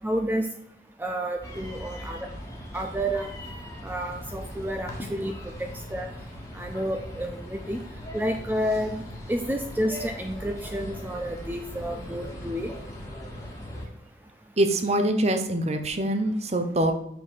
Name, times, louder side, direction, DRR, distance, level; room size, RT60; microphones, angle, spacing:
voice 1, 0.0-0.5 1.0-2.3 2.7-3.3 3.8-5.3 5.6-6.1 6.5-7.8 8.1-9.0 9.3-12.7, equal, 10° right, 4 dB, 0.5 m, -30 dB
sound 1, 1.4-13.9, equal, 15° left, 1.6 m, -40 dB
voice 2, 14.6-16.9, right 1 dB, 35° right, 7 dB, 0.9 m, -24 dB
6.3 x 6.1 x 5.0 m, 0.72 s
head